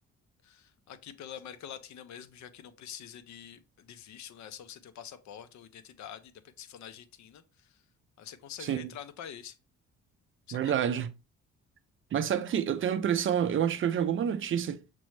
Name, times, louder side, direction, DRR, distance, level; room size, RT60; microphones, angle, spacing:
voice 1, 0.4-7.8 8.2-9.6 10.5-10.9, left 9 dB, 65° left, 0.6 m, -46 dB
voice 2, 8.6-8.9 10.5-11.1 12.1-14.8, right 9 dB, 45° right, 0.4 m, -28 dB
6.0 x 2.0 x 3.1 m
cardioid pair, 90°, 30 cm